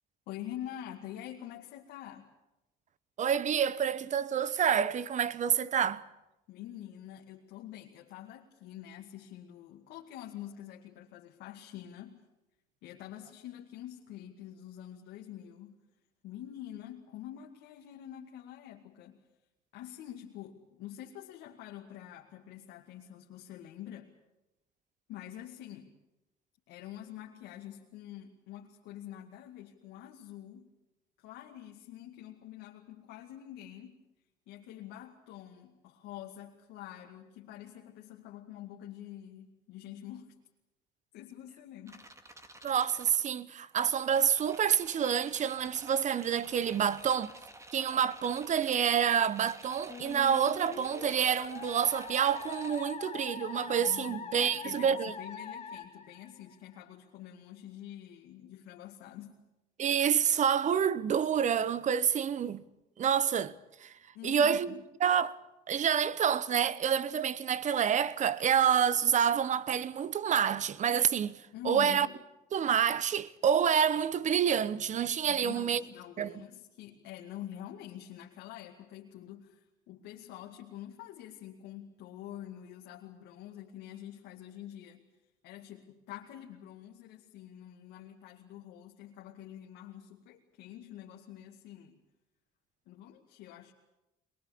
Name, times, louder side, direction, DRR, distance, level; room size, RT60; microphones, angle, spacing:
voice 1, 0.3-2.3 6.5-12.2 12.8-15.8 16.2-19.2 19.7-24.1 25.1-25.9 26.7-30.7 31.2-34.0 34.5-40.3 41.1-42.1 53.8-59.4 64.1-64.9 71.5-72.3 75.3-85.0 85.4-92.0 92.9-93.7, left 11 dB, 90° left, 2.3 m, -46 dB
voice 2, 3.2-6.1 42.6-47.3 47.7-55.1 59.8-62.6 63.0-63.9 64.2-64.7 65.0-65.4 65.7-72.1 72.5-75.8 76.2-76.4, right 8 dB, 45° right, 1.0 m, -28 dB
sound 1, 41.9-43.3 43.7-52.9 54.3-54.6, right 2 dB, 15° right, 2.1 m, -51 dB
Musical instrument, 49.9-56.8, left 6 dB, 35° left, 2.7 m, -43 dB
22.5 x 21.5 x 8.6 m
cardioid pair, 110°, 17 cm